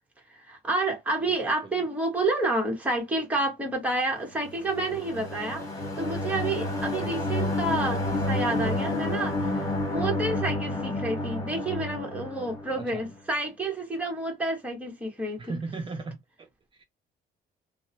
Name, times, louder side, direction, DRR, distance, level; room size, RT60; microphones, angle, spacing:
voice 1, 0.4-5.6 6.0-15.6, right 2 dB, 10° right, 1.1 m, -29 dB
sound 1, 4.4-13.1, left 1 dB, 20° left, 1.5 m, -30 dB
voice 2, 7.0-7.3 12.8-13.1 15.4-16.5 16.8-16.9, right 3 dB, 30° right, 0.4 m, -37 dB
2.7 x 2.0 x 2.9 m
cardioid pair, 110°, 17 cm